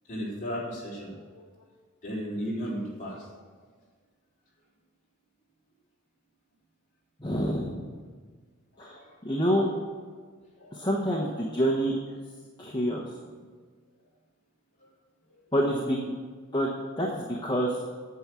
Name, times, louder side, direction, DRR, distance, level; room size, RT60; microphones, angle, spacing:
voice 1, 0.1-1.4 2.0-3.2 8.8-9.0 10.6-10.7, equal, 35° left, -6 dB, 3.6 m, -35 dB
voice 2, 7.2-7.9 8.8-9.0 9.2-9.7 10.7-12.0 12.6-13.0 15.5-16.2 16.5-16.7 17.0-17.8, equal, 20° left, -2 dB, 1.0 m, -27 dB
9.5 x 7.1 x 7.4 m, 1.5 s
head